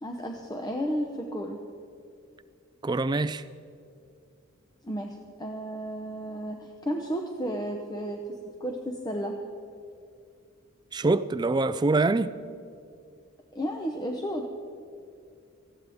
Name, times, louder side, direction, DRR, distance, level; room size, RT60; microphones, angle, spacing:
voice 1, 0.0-1.6 4.8-9.3 13.5-14.6, equal, 15° left, 1 dB, 0.8 m, -33 dB
voice 2, 2.8-3.4 10.9-12.3, right 3 dB, 20° right, 13 dB, 0.3 m, -24 dB
19.5 x 15.0 x 3.5 m, 2.5 s
head